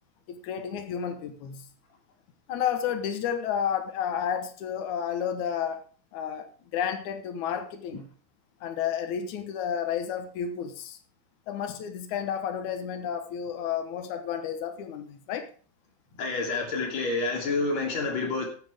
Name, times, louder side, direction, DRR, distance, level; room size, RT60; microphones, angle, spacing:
voice 1, 0.3-1.6 2.5-5.8 6.1-6.5 6.7-8.1 8.6-11.0 11.5-15.5, left 8 dB, 90° left, 1.6 m, -31 dB
voice 2, 16.2-18.5, left 3 dB, 40° left, 3.7 m, -28 dB
16.5 x 9.4 x 3.5 m
omnidirectional pair, 5.4 m